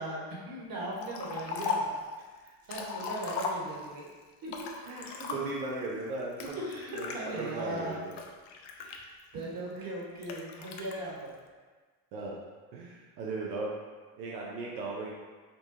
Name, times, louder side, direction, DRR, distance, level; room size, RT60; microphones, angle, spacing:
voice 1, 0.0-2.0 2.7-4.1 4.4-4.7 6.6-8.1 8.8-9.0 9.3-11.4, right 1 dB, 45° right, -4 dB, 1.4 m, -38 dB
Liquid, 1.0-2.0 2.5-4.0 4.5-5.7 6.4-7.2 7.8-9.4 10.2-10.9, left 5 dB, 55° left, 0.6 m, -37 dB
voice 2, 4.8-6.7 6.9-8.1 9.8-10.0 12.1-12.4 12.7-13.7 14.2-15.1, right 3 dB, 90° right, -3 dB, 0.7 m, -37 dB
5.3 x 2.3 x 2.7 m, 1.4 s
hypercardioid pair, 70°, 50 cm